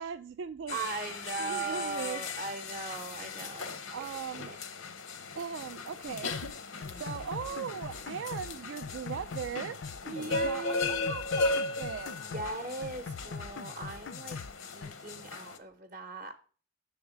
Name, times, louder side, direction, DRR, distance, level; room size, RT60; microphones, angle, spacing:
voice 1, 0.0-1.1 1.4-2.2 3.9-4.6 5.4-6.4 6.9-9.8 10.4-12.5, right 7 dB, 65° right, 0.3 m, -39 dB
sound 1, 0.7-15.6, left 3 dB, 85° left, 0.7 m, -37 dB
voice 2, 0.7-4.1 4.4-4.6 10.0-11.1 12.2-16.3, right 3 dB, 40° right, 0.7 m, -39 dB
sound 2, 6.1-6.5 6.8-8.5 8.8-10.5 10.8-12.5 12.8-14.5 14.8-14.9, left 5 dB, 60° left, 0.4 m, -42 dB
7.1 x 3.5 x 6.0 m
head